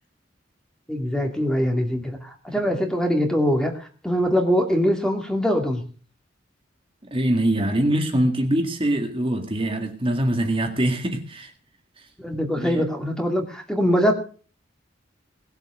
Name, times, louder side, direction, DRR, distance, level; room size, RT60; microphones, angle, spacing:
voice 1, 0.9-3.7 4.0-5.8 12.2-14.1, equal, 5° left, 2.5 m, -22 dB
voice 2, 7.1-11.5 12.6-12.8, right 1 dB, 30° right, 2.0 m, -23 dB
19.0 x 8.0 x 6.3 m
head